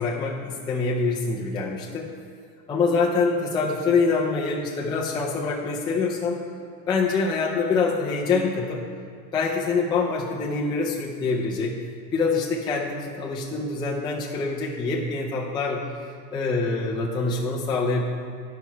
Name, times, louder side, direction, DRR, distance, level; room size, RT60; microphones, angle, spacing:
voice 1, 0.0-2.1 2.7-6.4 6.9-8.8 9.3-11.7 12.1-18.0, left 4 dB, 10° left, -4 dB, 0.5 m, -25 dB
10.5 x 5.7 x 4.5 m, 2.3 s
supercardioid pair, 155°, 40 cm